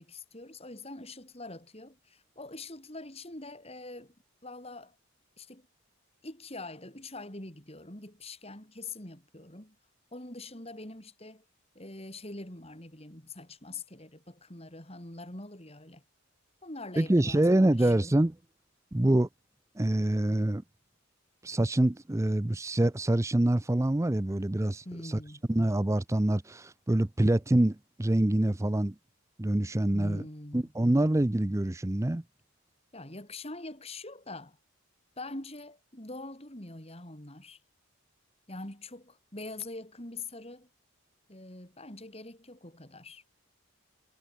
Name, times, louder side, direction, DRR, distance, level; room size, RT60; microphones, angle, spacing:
voice 1, 0.0-4.1 4.4-5.0 5.4-5.7 6.2-9.8 10.1-11.4 11.8-16.0 16.6-18.2 24.9-25.4 29.9-30.7 32.9-34.6 35.2-37.6 38.5-40.7 41.3-43.2, left 2 dB, 25° left, 3.7 m, -44 dB
voice 2, 17.0-18.3 18.9-19.3 19.8-20.6 21.4-24.8 25.5-28.9 29.4-30.2 30.5-32.2, right 1 dB, 15° right, 0.5 m, -25 dB
head